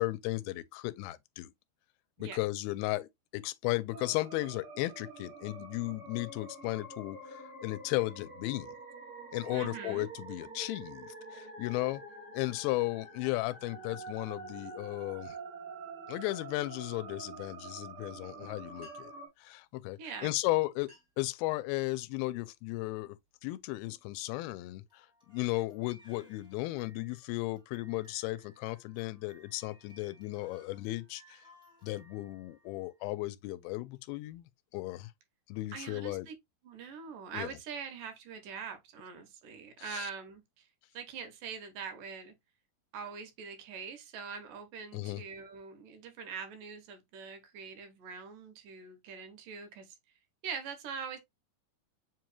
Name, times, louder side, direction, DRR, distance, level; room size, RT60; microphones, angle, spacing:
voice 1, 0.0-1.5 2.2-8.8 9.3-12.0 12.3-15.4 16.1-19.1 19.4-31.4 31.8-34.4 34.7-35.1 35.5-36.3 37.3-37.5 39.8-40.1 44.9-45.2, left 19 dB, 85° left, 2.4 m, -35 dB
sound 1, 3.9-19.3, right 3 dB, 30° right, 1.6 m, -47 dB
voice 2, 9.5-10.1 20.0-20.3 35.7-36.3 36.6-40.6 40.9-42.3 42.9-50.0 50.4-51.2, right 6 dB, 70° right, 2.4 m, -43 dB
sound 2, 18.7-19.3 20.2-20.4 20.7-21.3 21.8-22.2 22.8-23.0 23.6-24.8, left 2 dB, 45° right, 2.3 m, -63 dB
Crying sobbing, 24.9-33.1, equal, 5° right, 0.7 m, -62 dB
7.4 x 3.1 x 2.2 m
omnidirectional pair, 4.3 m